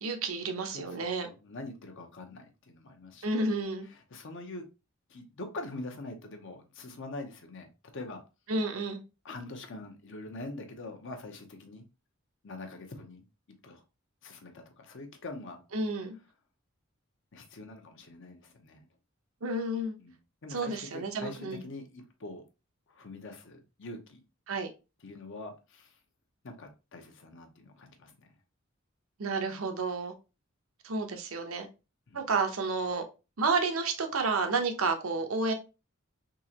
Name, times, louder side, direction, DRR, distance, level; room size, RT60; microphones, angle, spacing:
voice 1, 0.0-1.3 3.2-3.9 8.5-9.0 15.7-16.2 19.4-19.9 20.5-21.6 24.5-24.7 29.2-30.1 30.8-31.7 32.1-33.0 33.4-35.5, right 3 dB, 80° right, 0.7 m, -30 dB
voice 2, 0.7-3.5 3.9-4.7 5.1-7.7 7.9-8.2 9.2-11.8 12.4-13.2 13.6-13.8 14.2-15.6 17.3-18.9 20.0-20.1 20.4-22.4 22.9-24.2 25.0-26.0 26.4-28.3 32.1-32.2, left 2 dB, 65° left, 0.8 m, -44 dB
3.8 x 2.9 x 2.8 m
head